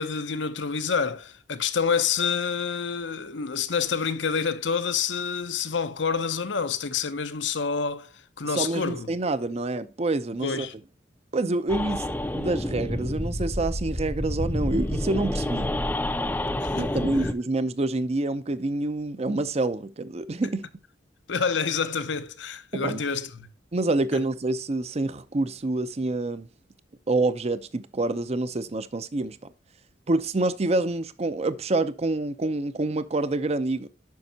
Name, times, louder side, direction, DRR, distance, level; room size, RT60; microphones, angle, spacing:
voice 1, 0.0-8.1 8.4-9.1 10.4-10.7 16.6-16.9 17.2-17.3 21.3-23.5 24.1-24.2, left 6 dB, 85° left, 0.8 m, -28 dB
voice 2, 8.5-10.7 11.3-15.7 16.8-20.7 22.7-23.0 23.7-26.5 27.1-29.4 30.1-33.9, right 2 dB, 35° right, 0.6 m, -27 dB
sound 1, 11.7-17.3, left 1 dB, 10° left, 0.5 m, -29 dB
9.4 x 6.2 x 2.8 m
head